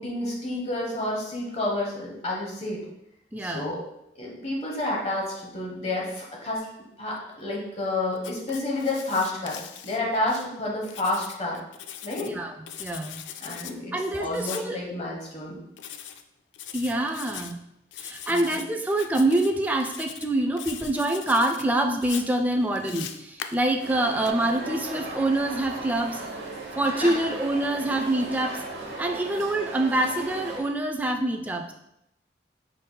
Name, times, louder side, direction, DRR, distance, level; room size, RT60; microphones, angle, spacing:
voice 1, 0.0-2.8 3.4-3.8 4.1-6.6 7.0-11.6 12.0-12.3 13.4-15.6 18.3-18.6 27.0-27.2, left 2 dB, 35° left, -2 dB, 1.0 m, -30 dB
voice 2, 3.3-3.8 12.2-12.5 12.8-13.2 13.9-14.8 16.7-17.6 18.0-26.2 26.7-28.6 29.0-31.7, right 1 dB, 10° right, 3 dB, 0.3 m, -26 dB
Writing, 8.2-10.5 10.8-12.3 12.7-13.7 14.3-14.7 15.8-16.2 16.5-17.5 17.9-18.6 18.9-19.5 19.8-20.3 20.6-21.6 22.0-24.3, left 9 dB, 85° left, 0.3 m, -40 dB
sound 1, 23.8-30.6, right 2 dB, 85° right, 1.0 m, -37 dB
5.2 x 4.0 x 2.2 m, 0.81 s
head